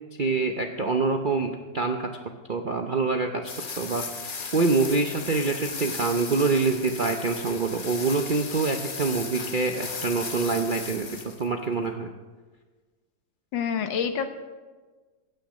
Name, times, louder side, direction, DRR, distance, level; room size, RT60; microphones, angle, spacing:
voice 1, 0.2-2.1 2.5-12.1, right 3 dB, 55° right, 4 dB, 0.5 m, -26 dB
sound 1, 3.5-11.5, left 5 dB, 35° left, 0.9 m, -36 dB
voice 2, 13.5-14.3, left 7 dB, 85° left, 8 dB, 1.8 m, -27 dB
16.5 x 9.2 x 6.4 m, 1.3 s
omnidirectional pair, 2.0 m